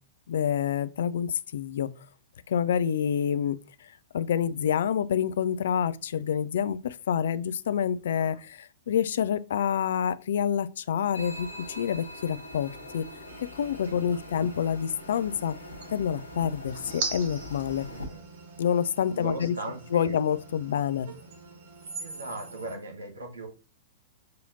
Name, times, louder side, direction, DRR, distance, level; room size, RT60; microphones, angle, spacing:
voice 1, 0.3-1.9 2.5-3.6 4.1-13.0 13.6-15.5 15.9-17.9 18.6-19.6 19.9-21.1, left 8 dB, 60° left, 0.3 m, -27 dB
sound 1, 11.1-18.1, left 1 dB, 85° left, 1.2 m, -43 dB
sound 2, 13.3-22.8, right 4 dB, 55° right, 1.0 m, -42 dB
voice 2, 17.8-18.2 19.1-20.1 22.0-23.5, right 2 dB, 75° right, 1.3 m, -39 dB
6.3 x 2.7 x 2.7 m
figure-of-eight pair, 105°, 0 cm